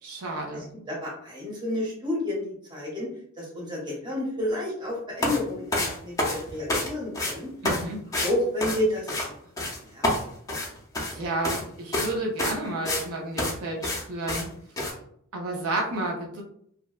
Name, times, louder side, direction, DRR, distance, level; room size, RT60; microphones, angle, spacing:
voice 1, 0.0-0.7 7.6-8.0 11.1-14.5 15.3-16.4, right 2 dB, 75° right, 0 dB, 0.5 m, -31 dB
voice 2, 0.5-3.1 3.4-7.5 8.1-9.3 9.6-10.1, left 1 dB, 20° right, -4 dB, 0.8 m, -30 dB
sound 1, 5.2-5.4 5.7-6.9 7.1-7.3 7.7-7.8 8.1-8.3 8.6-9.3 9.6-9.8 10.0-11.2 11.4-11.6 11.9-12.1 12.4-13.1 13.4-13.5 13.8-14.0 14.3-14.4 14.8-14.9, left 1 dB, 15° left, 0.4 m, -27 dB
2.7 x 2.1 x 2.3 m, 0.66 s
head